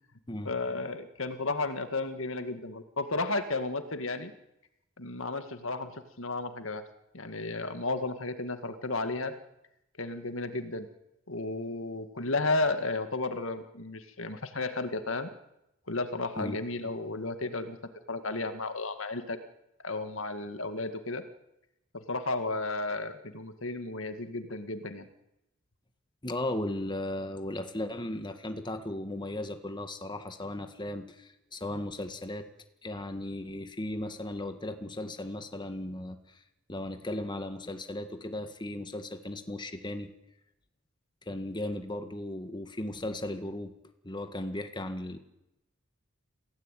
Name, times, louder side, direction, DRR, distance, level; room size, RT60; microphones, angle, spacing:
voice 1, 0.5-4.3 5.0-6.9 7.1-9.3 10.0-10.9 11.3-15.3 15.9-17.8 18.1-19.4 19.8-21.2 21.9-25.1, left 3 dB, 65° left, 9 dB, 2.1 m, -33 dB
voice 2, 26.2-32.4 32.8-36.4 36.7-40.1 41.3-43.7 44.0-45.2, left 1 dB, 20° left, 7 dB, 1.8 m, -36 dB
27.5 x 17.0 x 9.3 m, 0.88 s
head